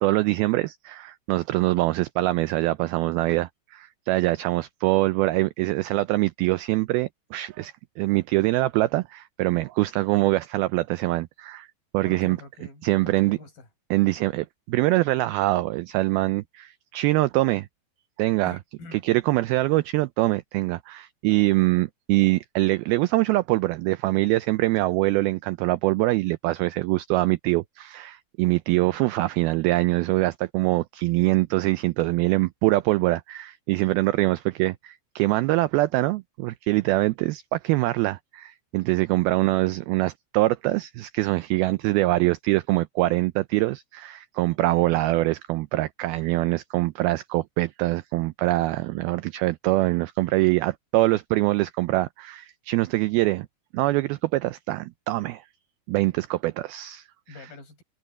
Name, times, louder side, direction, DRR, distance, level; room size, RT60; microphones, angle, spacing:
voice 1, 0.0-11.7 11.9-12.4 12.8-13.4 13.9-17.7 18.2-18.6 19.0-53.5 53.7-55.4 55.9-57.1, right 19 dB, 90° right, 2.1 m, -24 dB
voice 2, 12.0-13.7 18.4-19.0 57.3-57.8, left 3 dB, 55° left, 8.8 m, -44 dB
omnidirectional pair, 5.0 m